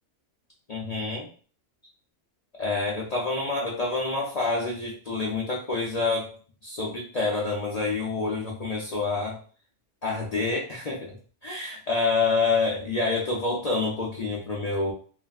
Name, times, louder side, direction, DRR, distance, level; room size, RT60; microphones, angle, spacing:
voice 1, 0.7-1.3 2.6-6.3 6.6-9.4 10.0-11.1 11.4-14.9, left 3 dB, 55° left, -4 dB, 0.4 m, -27 dB
3.2 x 2.4 x 2.3 m, 0.41 s
omnidirectional pair, 1.3 m